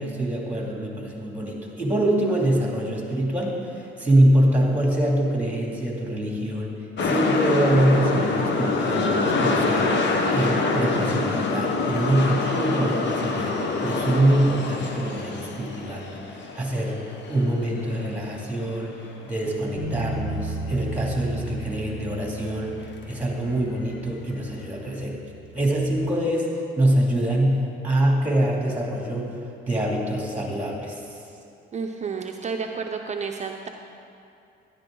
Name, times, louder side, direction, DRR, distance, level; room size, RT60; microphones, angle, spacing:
voice 1, 0.0-6.7 7.0-10.0 10.3-13.6 13.8-17.0 17.3-19.0 19.3-25.2 25.5-29.4 29.7-31.0, right 1 dB, 10° right, -2 dB, 2.7 m, -24 dB
sound 1, 7.0-19.0 19.3-19.4, left 3 dB, 65° left, 1.1 m, -25 dB
Bass guitar, 19.8-26.0, right 3 dB, 80° left, 1.3 m, -36 dB
voice 2, 31.7-33.7, right 5 dB, 35° right, 3 dB, 0.6 m, -31 dB
12.0 x 10.5 x 3.8 m, 2.6 s
cardioid pair, 90°, 20 cm